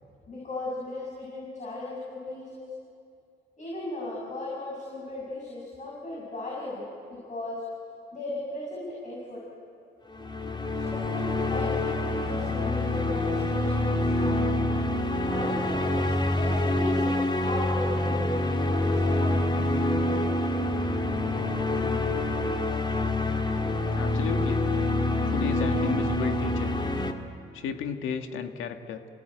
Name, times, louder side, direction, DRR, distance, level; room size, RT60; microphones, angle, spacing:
voice 1, 0.3-2.7 3.6-7.6 8.1-9.4 10.7-14.6 15.2-16.1 16.4-19.8, left 2 dB, 40° left, -4 dB, 7.1 m, -36 dB
sound 1, 10.1-27.1, left 2 dB, 25° left, 2.4 m, -26 dB
voice 2, 23.9-24.7 25.3-26.7 27.5-29.0, left 7 dB, 85° left, 6 dB, 1.8 m, -33 dB
28.5 x 18.5 x 9.2 m, 2.4 s
cardioid pair, 90°, 20 cm